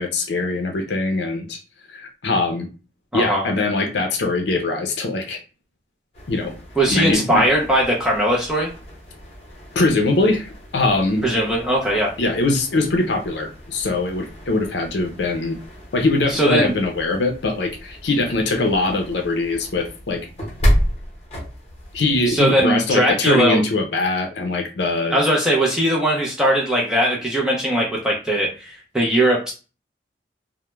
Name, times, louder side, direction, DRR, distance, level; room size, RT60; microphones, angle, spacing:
voice 1, 0.0-1.6 1.9-2.7 3.1-5.4 6.3-6.5 6.9-7.4 9.8-11.3 12.2-15.6 15.9-20.2 21.9-25.2, left 2 dB, 75° left, 3 dB, 0.5 m, -22 dB
voice 2, 3.1-3.5 6.8-8.7 11.2-12.2 16.3-16.7 22.3-23.6 25.1-29.5, right 1 dB, 5° right, -3 dB, 0.4 m, -19 dB
sound 1, 6.1-22.4, equal, 35° left, 0.8 m, -31 dB
2.2 x 2.1 x 3.0 m, 0.33 s
head